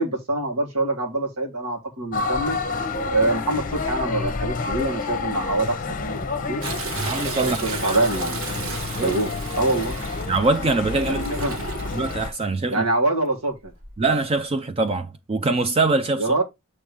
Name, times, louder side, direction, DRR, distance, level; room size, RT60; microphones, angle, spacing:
voice 1, 0.0-2.6 3.1-6.6 7.4-8.5 9.0-10.0 11.3-11.6 12.7-13.7 16.2-16.4, right 2 dB, 85° right, 1.8 m, -25 dB
sound 1, 2.1-12.3, left 4 dB, 40° left, 0.7 m, -29 dB
Toilet flush, 6.6-12.2 13.6-14.1 14.6-14.7, right 4 dB, 65° right, 1.2 m, -34 dB
voice 2, 7.0-8.0 8.6-9.2 10.3-11.2 11.9-12.8 14.0-16.3, right 3 dB, 25° right, 0.3 m, -24 dB
6.9 x 3.2 x 4.8 m
head